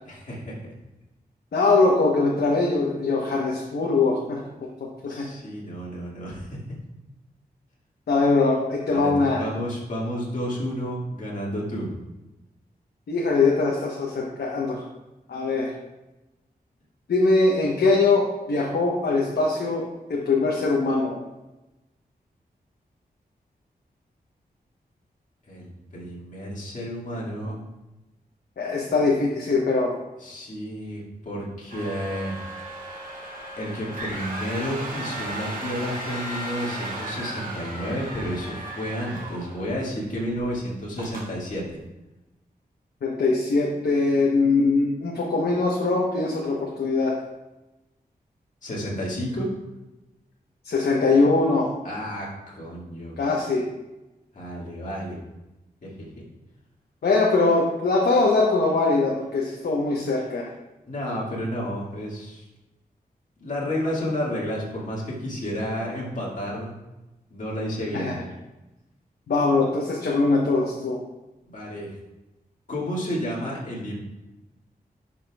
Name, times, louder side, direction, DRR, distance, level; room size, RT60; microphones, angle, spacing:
voice 1, 0.0-0.6 5.0-6.6 8.9-11.9 25.5-27.6 30.2-32.4 33.6-41.8 48.6-49.5 51.8-53.1 54.3-55.2 55.8-56.2 60.9-62.5 63.4-66.8 67.3-68.2 71.5-71.9 72.7-74.0, equal, 50° left, -5 dB, 2.1 m, -31 dB
voice 2, 1.5-4.4 5.0-5.2 8.1-9.4 13.1-14.8 15.3-15.7 17.1-19.8 20.1-21.2 28.6-29.9 43.0-47.1 50.6-51.7 53.2-53.6 57.0-60.5 67.9-68.1 69.3-71.0, left 3 dB, 85° left, -2 dB, 1.0 m, -22 dB
sound 1, 31.7-40.0 40.3-40.5 41.0-41.3, right 1 dB, 55° right, 1.9 m, -35 dB
11.0 x 5.9 x 2.4 m, 1.0 s
wide cardioid pair, 155°, 16 cm